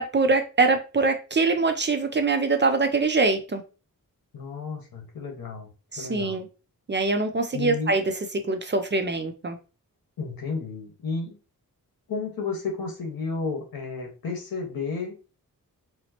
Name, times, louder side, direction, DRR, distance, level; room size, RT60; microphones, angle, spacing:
voice 1, 0.0-3.6 5.9-6.5 6.9-8.0 8.4-9.6, right 3 dB, 30° right, 6 dB, 0.4 m, -23 dB
voice 2, 4.3-5.7 6.0-6.4 7.5-7.9 10.2-11.4 12.1-15.4, left 4 dB, 80° left, 1 dB, 1.2 m, -32 dB
4.3 x 2.0 x 2.8 m, 0.33 s
wide cardioid pair, 140°, 36 cm